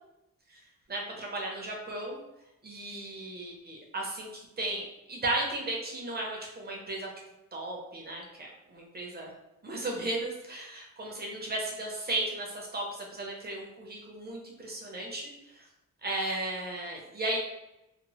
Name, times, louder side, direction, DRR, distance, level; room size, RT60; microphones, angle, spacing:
voice 1, 0.9-2.2 2.6-7.1 7.5-9.3 9.6-15.7 16.0-17.4, right 2 dB, 30° right, -1 dB, 0.7 m, -35 dB
2.9 x 2.0 x 2.9 m, 0.89 s
wide cardioid pair, 140°, 31 cm